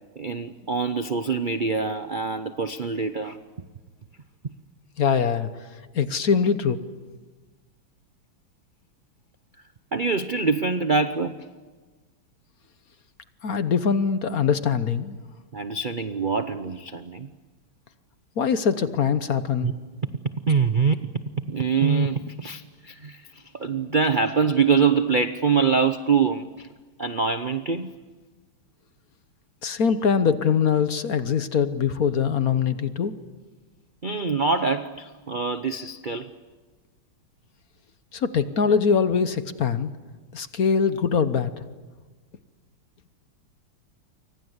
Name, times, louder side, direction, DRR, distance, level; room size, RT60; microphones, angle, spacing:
voice 1, 0.2-3.4 9.9-11.4 15.5-17.3 19.6-19.7 20.5-21.0 21.5-26.7 27.0-27.9 34.0-36.3, right 5 dB, 75° right, 10 dB, 0.4 m, -24 dB
voice 2, 5.0-5.5 5.9-6.8 13.4-15.2 18.4-19.7 29.6-33.1 38.1-39.9 40.3-41.5, left 6 dB, 50° left, 11 dB, 1.2 m, -22 dB
28.5 x 25.0 x 8.1 m, 1.4 s
omnidirectional pair, 2.3 m